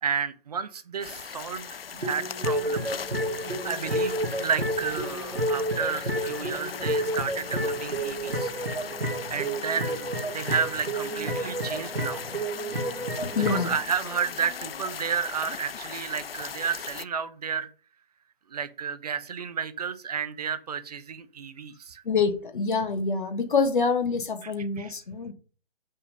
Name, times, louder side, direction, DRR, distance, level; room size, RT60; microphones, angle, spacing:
voice 1, 0.0-2.9 3.4-8.5 9.3-12.2 13.3-17.7 18.5-22.0 24.4-24.5 24.8-24.9, right 7 dB, 40° right, 12 dB, 0.9 m, -32 dB
sound 1, 1.0-17.0, left 7 dB, 80° left, 0.5 m, -38 dB
sound 2, 2.0-13.8, right 1 dB, 85° right, 1.9 m, -30 dB
voice 2, 13.3-13.7 22.0-25.3, left 5 dB, 55° left, 8 dB, 1.5 m, -26 dB
7.1 x 5.6 x 5.3 m, 0.37 s
figure-of-eight pair, 145°, 29 cm